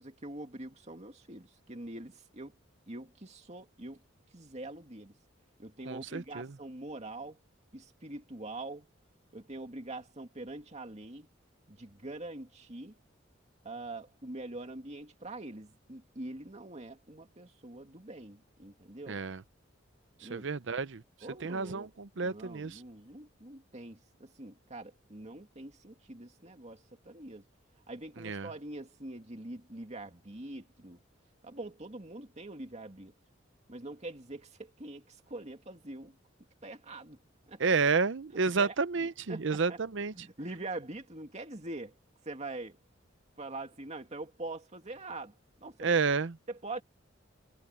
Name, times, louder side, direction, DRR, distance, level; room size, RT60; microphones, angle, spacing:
voice 1, 0.0-2.5 2.9-4.0 4.3-5.1 5.6-7.4 7.7-8.9 9.3-11.3 11.7-12.9 13.6-19.2 20.2-20.4 21.2-21.9 22.2-27.4 27.9-31.0 31.4-33.1 33.7-36.1 36.6-37.2 37.5-37.6 38.6-38.7 39.3-39.8 40.1-42.0 42.3-42.8 43.4-45.3 45.6-45.9 46.5-46.8, right 2 dB, 35° right, 2.4 m, -44 dB
voice 2, 5.9-6.6 19.1-19.4 20.2-21.0 21.4-22.8 28.2-28.5 37.6-40.1 45.8-46.4, right 4 dB, 65° right, 0.7 m, -30 dB
head